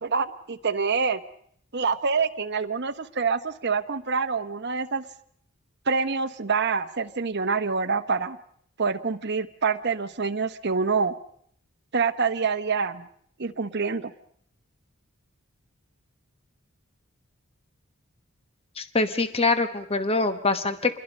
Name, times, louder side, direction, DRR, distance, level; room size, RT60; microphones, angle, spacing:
voice 1, 0.0-1.2 1.7-5.0 5.9-8.4 8.8-11.1 11.9-13.1 13.4-14.1, right 5 dB, 50° right, 10 dB, 1.0 m, -26 dB
voice 2, 18.8-21.0, left 3 dB, 25° left, 9 dB, 1.1 m, -24 dB
27.5 x 22.0 x 5.3 m, 0.65 s
head